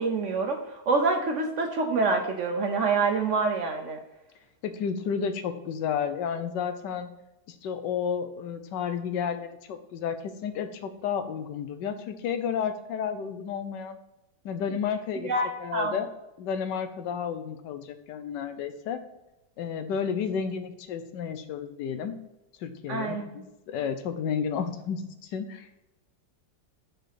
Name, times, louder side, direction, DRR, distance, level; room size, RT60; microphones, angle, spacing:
voice 1, 0.0-4.0 15.2-15.9 22.9-23.3, right 4 dB, 60° right, 3 dB, 0.8 m, -26 dB
voice 2, 4.6-7.1 7.5-14.0 14.4-15.3 15.6-16.1 16.4-19.0 19.6-22.2 22.6-25.7, left 7 dB, 85° left, 10 dB, 1.3 m, -32 dB
5.0 x 4.7 x 5.8 m, 0.93 s
omnidirectional pair, 1.8 m